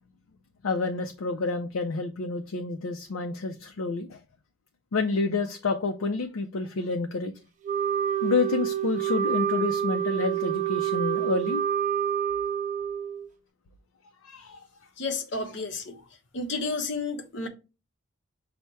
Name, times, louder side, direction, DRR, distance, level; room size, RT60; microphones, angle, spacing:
voice 1, 0.6-4.2 4.9-7.3 8.2-11.6 14.2-14.6, left 3 dB, 90° left, 0.5 m, -29 dB
Wind instrument woodwind instrument, 7.6-13.3, right 9 dB, 35° right, 0.4 m, -27 dB
voice 2, 15.0-16.0 16.3-17.5, left 3 dB, 55° left, 0.8 m, -31 dB
5.6 x 2.1 x 4.5 m
head